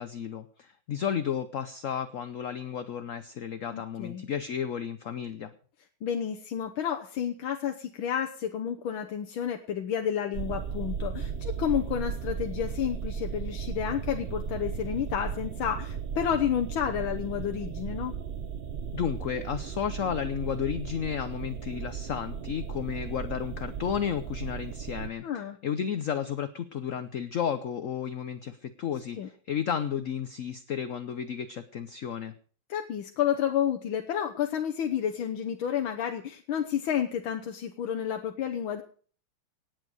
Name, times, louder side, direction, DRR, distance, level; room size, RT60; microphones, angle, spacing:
voice 1, 0.0-5.5 18.9-32.3, left 8 dB, 60° left, 11 dB, 0.9 m, -33 dB
voice 2, 3.7-4.2 6.0-18.1 25.2-25.6 29.2-29.3 32.7-38.8, left 9 dB, 85° left, 4 dB, 1.8 m, -30 dB
sound 1, 10.3-25.1, right 7 dB, 80° right, 0.5 m, -36 dB
18.0 x 8.2 x 6.3 m, 0.44 s
omnidirectional pair, 2.2 m